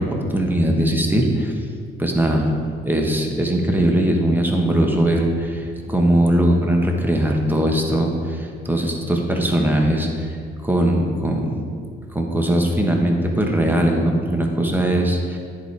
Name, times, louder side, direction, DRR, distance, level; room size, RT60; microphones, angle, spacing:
voice 1, 0.0-1.5 2.0-2.5 2.8-10.3 10.6-11.5 12.1-15.4, right 1 dB, 10° right, 2 dB, 1.2 m, -20 dB
9.9 x 5.1 x 4.6 m, 2.2 s
cardioid pair, 90°, 20 cm